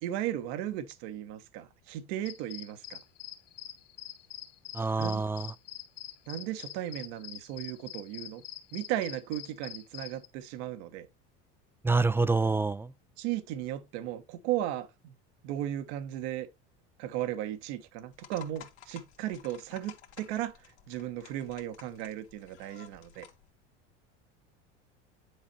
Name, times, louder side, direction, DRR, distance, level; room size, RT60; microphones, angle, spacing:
voice 1, 0.0-3.0 5.0-5.2 6.3-8.4 8.7-11.1 13.2-15.1 15.4-16.5 17.0-20.5 20.9-23.2, right 12 dB, 70° right, 1.3 m, -36 dB
sound 1, 2.2-10.3, left 12 dB, 65° left, 2.2 m, -45 dB
voice 2, 4.7-5.5 11.8-12.9, right 3 dB, 5° right, 0.4 m, -27 dB
sound 2, 18.1-23.5, left 10 dB, 80° left, 1.9 m, -53 dB
10.0 x 4.3 x 4.2 m
hypercardioid pair, 95°, 34 cm